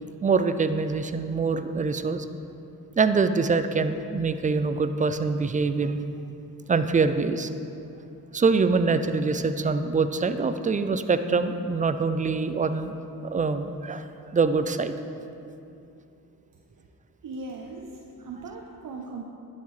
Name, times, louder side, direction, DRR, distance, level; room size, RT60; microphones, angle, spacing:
voice 1, 0.2-2.3 3.0-6.0 6.7-7.5 8.3-12.9 13.2-14.1 14.3-14.9, right 4 dB, 20° right, 10 dB, 0.4 m, -24 dB
voice 2, 17.2-19.2, right 3 dB, 55° right, 0 dB, 0.7 m, -39 dB
11.0 x 5.8 x 3.2 m, 2.7 s
cardioid pair, 65°, 39 cm